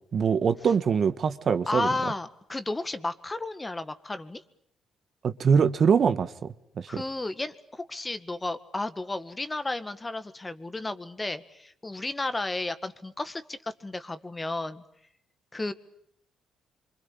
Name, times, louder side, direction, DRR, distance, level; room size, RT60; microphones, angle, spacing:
voice 1, 0.1-1.9 5.2-6.9, right 6 dB, 50° right, 1.5 m, -23 dB
voice 2, 1.7-4.4 6.9-14.8 15.5-15.7, left 2 dB, 20° left, 1.9 m, -33 dB
26.5 x 25.0 x 8.7 m
cardioid pair, 90°, 0 cm